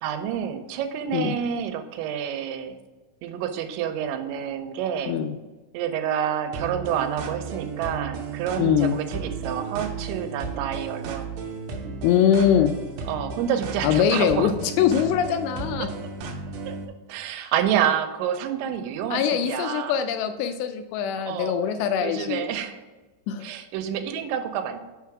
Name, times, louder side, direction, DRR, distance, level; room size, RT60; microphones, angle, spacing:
voice 1, 0.0-2.8 3.2-5.2 5.7-11.3 13.1-14.5 15.8-16.1 16.7-16.8 17.1-20.0 21.2-21.6 22.0-22.8 23.4-24.8, right 9 dB, 90° right, 7 dB, 3.0 m, -28 dB
sound 1, 6.5-16.8, right 5 dB, 75° right, 2.6 m, -34 dB
voice 2, 8.6-8.9 12.0-12.7 13.8-15.9 19.1-22.5 23.3-23.4, left 9 dB, 85° left, 8 dB, 2.6 m, -22 dB
6.6 x 5.7 x 4.7 m, 1.2 s
omnidirectional pair, 5.2 m